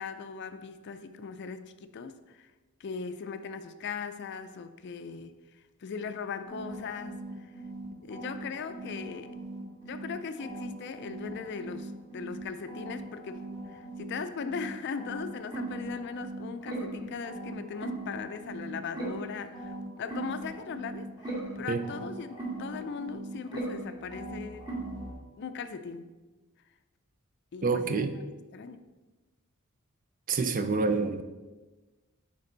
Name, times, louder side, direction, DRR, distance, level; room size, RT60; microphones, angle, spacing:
voice 1, 0.0-2.5 2.8-5.3 5.8-7.2 8.0-9.4 9.9-24.7 25.4-26.1 27.5-28.8, left 5 dB, 50° left, 10 dB, 0.4 m, -39 dB
sound 1, 6.4-10.1 10.4-14.7 15.0-25.1, right 2 dB, 20° right, 2.3 m, -39 dB
voice 2, 27.6-28.2 30.3-31.2, right 4 dB, 35° right, 9 dB, 0.4 m, -27 dB
9.7 x 3.4 x 3.9 m, 1.2 s
head